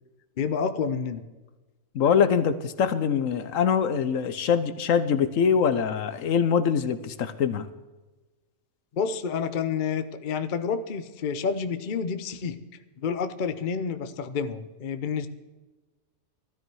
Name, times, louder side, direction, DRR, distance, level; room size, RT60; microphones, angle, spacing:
voice 1, 0.4-1.2 8.9-12.6 13.0-15.3, left 6 dB, 45° left, 10 dB, 0.7 m, -29 dB
voice 2, 1.9-7.7, left 7 dB, 70° left, 13 dB, 1.1 m, -23 dB
16.0 x 13.0 x 4.7 m, 1.2 s
omnidirectional pair, 1.5 m